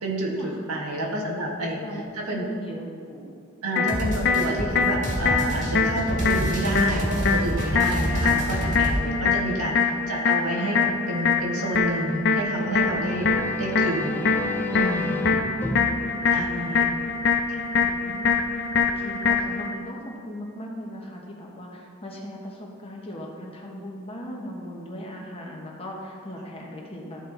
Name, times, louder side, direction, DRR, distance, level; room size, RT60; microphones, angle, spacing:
voice 1, 0.0-1.8 2.1-2.5 3.6-14.2 14.7-15.3 16.3-16.9 17.5-17.6, right 1 dB, 90° right, -1 dB, 1.5 m, -29 dB
voice 2, 1.6-3.3 9.0-9.5 15.0-17.1 17.7-18.4 18.8-27.3, equal, 25° left, -2 dB, 1.2 m, -38 dB
sound 1, 3.8-19.8, left 4 dB, 50° left, 0.6 m, -24 dB
sound 2, 3.9-9.0, right 1 dB, 35° right, 1.7 m, -28 dB
sound 3, 12.5-17.3, left 2 dB, 10° left, 0.4 m, -33 dB
13.0 x 4.4 x 3.9 m, 2.4 s
head